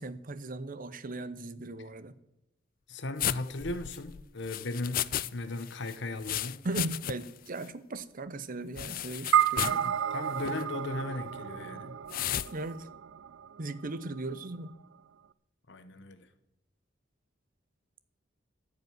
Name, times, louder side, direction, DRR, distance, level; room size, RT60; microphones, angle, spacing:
voice 1, 0.0-2.1 6.6-10.0 12.5-12.9 13.6-14.7, right 2 dB, 45° right, 0.7 m, -38 dB
voice 2, 2.9-6.6 9.6-12.0 15.7-16.3, left 2 dB, 65° left, 1.1 m, -37 dB
sound 1, 3.2-5.3 5.6-7.4 7.6-7.7 8.8-9.9 10.4-10.6 12.1-12.5, left 11 dB, 45° left, 0.4 m, -34 dB
sound 2, 9.3-13.9, right 9 dB, 85° right, 0.4 m, -31 dB
14.5 x 5.3 x 9.5 m
head